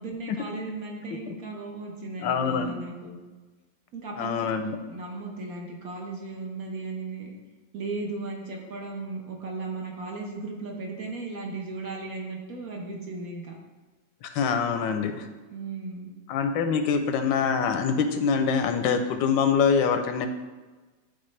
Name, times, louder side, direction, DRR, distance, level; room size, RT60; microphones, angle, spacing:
voice 1, 0.0-3.2 3.9-4.5 4.9-7.3 7.7-13.6 15.5-16.1, right 3 dB, 55° right, 0 dB, 1.3 m, -36 dB
voice 2, 2.2-2.7 4.2-4.8 14.2-15.3 16.3-20.3, left 6 dB, 85° left, 7 dB, 1.3 m, -24 dB
11.0 x 4.0 x 3.2 m, 1.3 s
omnidirectional pair, 2.0 m